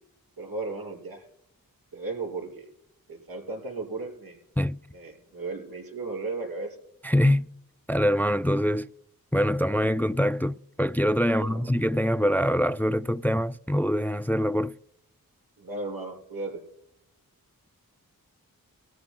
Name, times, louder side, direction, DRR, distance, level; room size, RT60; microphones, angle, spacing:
voice 1, 0.4-1.3 1.9-2.7 3.1-4.4 4.9-6.8 11.3-11.7 15.6-16.6, right 3 dB, 80° right, 5.6 m, -35 dB
voice 2, 7.0-7.5 7.9-8.9 9.3-14.8, equal, 5° left, 0.4 m, -24 dB
21.5 x 14.0 x 2.2 m
cardioid pair, 60°, 36 cm